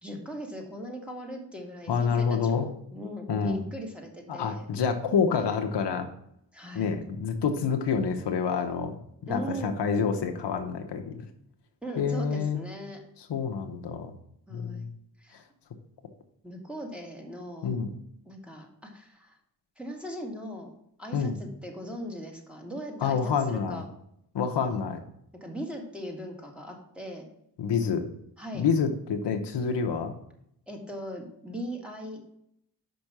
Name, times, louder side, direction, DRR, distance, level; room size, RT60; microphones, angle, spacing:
voice 1, 0.0-4.7 6.5-6.9 9.3-9.8 11.8-13.0 14.5-14.9 15.2-15.4 16.4-17.8 18.3-19.4 19.8-23.9 25.4-27.3 28.4-28.7 30.7-32.2, equal, 5° right, 1 dB, 1.8 m, -39 dB
voice 2, 1.9-2.7 3.3-3.6 4.3-6.1 6.7-9.0 9.3-11.2 12.0-12.6 13.3-14.1 14.5-14.9 17.6-17.9 21.1-21.3 23.0-23.8 24.3-25.0 27.6-28.0 28.5-30.1, left 6 dB, 75° left, 5 dB, 0.9 m, -27 dB
5.5 x 5.2 x 6.0 m, 0.74 s
cardioid pair, 75°, 41 cm